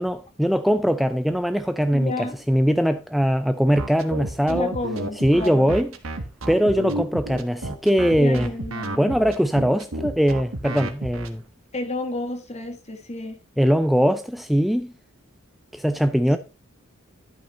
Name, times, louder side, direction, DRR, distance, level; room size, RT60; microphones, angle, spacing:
voice 1, 0.0-4.7 5.2-5.9 6.5-8.5 9.0-11.4 13.6-14.9 15.7-16.4, equal, ahead, 0.3 m, -21 dB
voice 2, 1.9-2.4 4.5-5.7 8.2-9.2 11.7-13.4, left 2 dB, 35° left, 1.8 m, -31 dB
sound 1, 3.8-11.3, right 1 dB, 85° right, 1.5 m, -31 dB
11.5 x 5.8 x 4.1 m
head